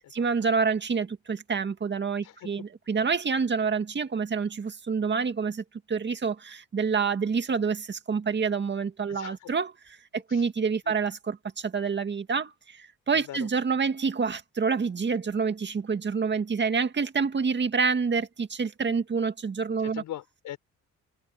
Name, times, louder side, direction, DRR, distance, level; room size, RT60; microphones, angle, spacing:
voice 1, 0.1-20.0, right 5 dB, 35° right, 2.0 m, -27 dB
voice 2, 9.1-9.5 10.3-10.4 10.9-11.0 13.3-13.4 19.8-20.6, left 13 dB, 85° left, 4.7 m, -40 dB
cardioid pair, 90°, 30 cm